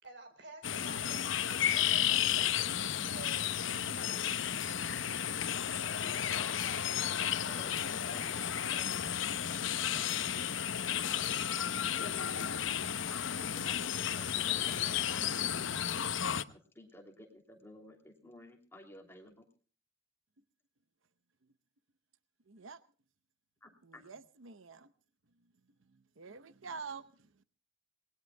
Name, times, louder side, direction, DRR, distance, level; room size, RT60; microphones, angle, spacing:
voice 1, 0.0-2.7 3.1-3.5 3.9-4.5, right 2 dB, 60° right, 4.3 m, -51 dB
sound 1, 0.6-16.4, left 9 dB, 80° left, 0.8 m, -33 dB
voice 2, 5.7-9.0 11.1-15.2 15.6-15.9 16.5-19.5 23.6-24.1, left 1 dB, 10° left, 2.8 m, -54 dB
voice 3, 22.5-22.8 23.8-24.9 25.9-27.4, right 5 dB, 90° right, 0.8 m, -48 dB
27.0 x 20.0 x 2.2 m
head